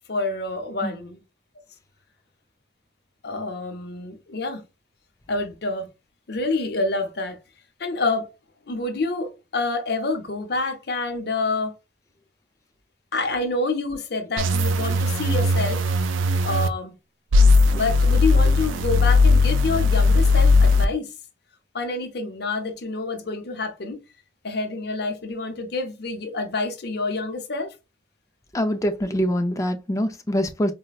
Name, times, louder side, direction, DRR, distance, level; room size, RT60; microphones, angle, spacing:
voice 1, 0.1-1.2 3.2-4.6 5.3-5.9 6.3-7.4 7.8-8.3 8.7-11.7 13.1-15.8 16.4-16.9 17.7-21.1 21.7-24.0 24.4-27.7, left 3 dB, 60° left, 0.7 m, -27 dB
sound 1, 14.4-16.7 17.3-20.9, left 3 dB, 90° right, 0.4 m, -18 dB
voice 2, 28.5-30.7, equal, 15° left, 0.3 m, -24 dB
4.1 x 2.1 x 2.3 m
head